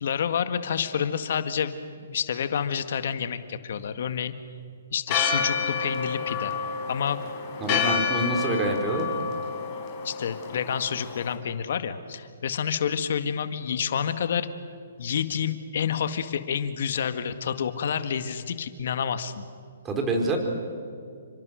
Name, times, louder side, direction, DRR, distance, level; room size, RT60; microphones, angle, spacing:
voice 1, 0.0-1.8 2.0-4.3 4.9-6.6 6.9-7.2 7.7-8.0 10.0-14.5 15.0-19.4, left 7 dB, 60° left, 10 dB, 1.7 m, -29 dB
Church bell, 5.1-11.3, left 5 dB, 30° left, 5.0 m, -29 dB
voice 2, 7.6-9.1 19.8-20.4, right 2 dB, 15° right, 3 dB, 4.5 m, -26 dB
29.5 x 25.0 x 6.4 m, 2.3 s
hypercardioid pair, 145°, 0 cm